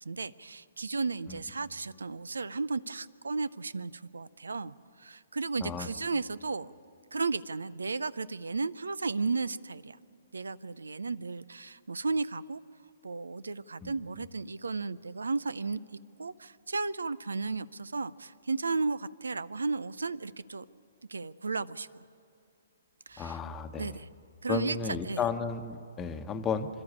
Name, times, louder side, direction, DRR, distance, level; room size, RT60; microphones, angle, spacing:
voice 1, 0.0-6.7 7.1-10.0 10.3-12.6 13.0-15.8 16.2-20.7 21.1-22.0 23.1-23.4 23.8-24.1 24.4-24.8 25.1-25.2, right 4 dB, 80° right, 19 dB, 0.5 m, -34 dB
voice 2, 23.2-24.0 24.5-26.7, left 5 dB, 20° left, 8 dB, 1.1 m, -33 dB
26.5 x 12.5 x 8.5 m, 2.6 s
figure-of-eight pair, 125°, 0 cm